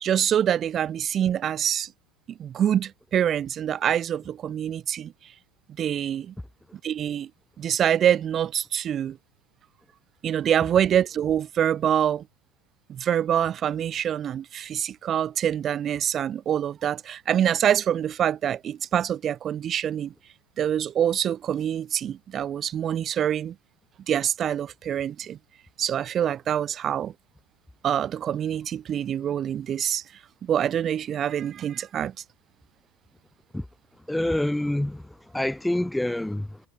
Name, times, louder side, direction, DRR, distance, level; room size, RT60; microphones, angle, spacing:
voice 1, 0.0-1.9 2.4-5.1 5.8-6.3 6.8-7.3 7.6-9.2 10.2-12.2 12.9-20.1 20.6-23.5 24.1-25.4 25.8-27.1 27.8-30.0 30.4-32.1, right 9 dB, 30° right, 0.8 m, -25 dB
voice 2, 34.1-36.6, left 1 dB, 5° left, 0.5 m, -27 dB
supercardioid pair, 150°, 0 cm